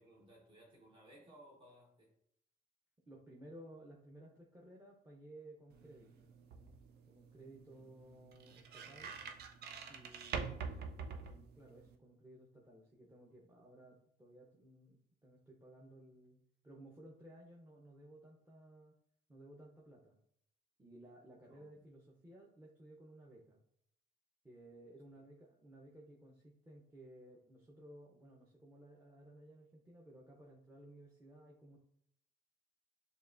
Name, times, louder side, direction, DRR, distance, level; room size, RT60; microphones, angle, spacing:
voice 1, 0.0-2.2 21.5-21.7, right 1 dB, 30° right, -4 dB, 1.1 m, -61 dB
voice 2, 3.1-6.4 7.1-9.2 9.9-19.0 19.3-20.2 20.8-23.6 24.4-31.8, right 1 dB, 15° right, -2 dB, 0.8 m, -57 dB
sound 1, 5.7-11.9, right 5 dB, 75° right, 0.5 m, -46 dB
6.7 x 2.4 x 2.5 m, 0.70 s
cardioid pair, 85°, 17 cm